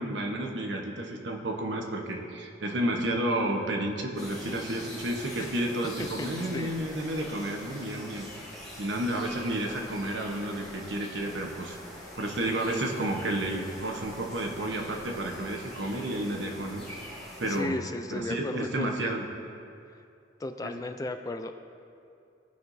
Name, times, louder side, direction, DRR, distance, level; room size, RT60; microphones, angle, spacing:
voice 1, 0.0-8.3 8.8-11.8 12.1-16.9 17.4-17.8 18.1-19.2 20.6-20.7, right 1 dB, 80° right, 1 dB, 1.0 m, -31 dB
sound 1, 4.2-17.6, left 1 dB, ahead, 2.2 m, -44 dB
voice 2, 17.4-19.2 20.4-21.5, left 2 dB, 20° left, 7 dB, 0.3 m, -35 dB
17.0 x 5.7 x 2.7 m, 2.5 s
head